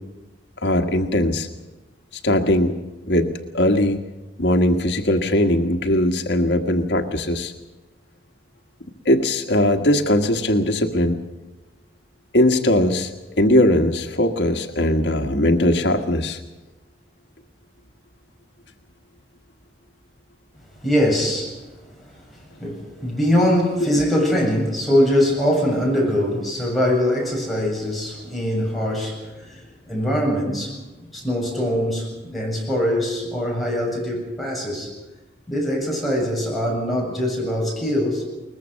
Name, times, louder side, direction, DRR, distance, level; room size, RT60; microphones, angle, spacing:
voice 1, 0.6-1.5 2.2-2.7 3.1-3.3 3.5-4.0 4.4-7.5 9.0-11.2 12.3-13.1 13.4-16.4 23.9-24.0, left 1 dB, 80° left, 5 dB, 1.6 m, -19 dB
voice 2, 20.8-21.6 21.9-30.8 31.1-34.9 35.5-38.2, equal, ahead, -3 dB, 7.5 m, -22 dB
22.0 x 20.5 x 6.4 m, 1.1 s
head